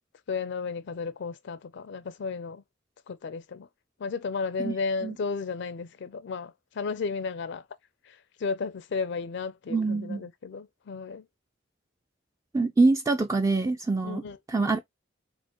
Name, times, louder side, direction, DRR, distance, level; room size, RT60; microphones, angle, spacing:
voice 1, 0.3-2.6 3.1-3.7 4.0-7.6 8.1-11.2 14.0-14.4, left 4 dB, 65° left, 0.4 m, -33 dB
voice 2, 9.7-10.2 12.5-14.2 14.5-14.8, right 3 dB, 15° right, 0.3 m, -24 dB
4.3 x 2.1 x 2.9 m
head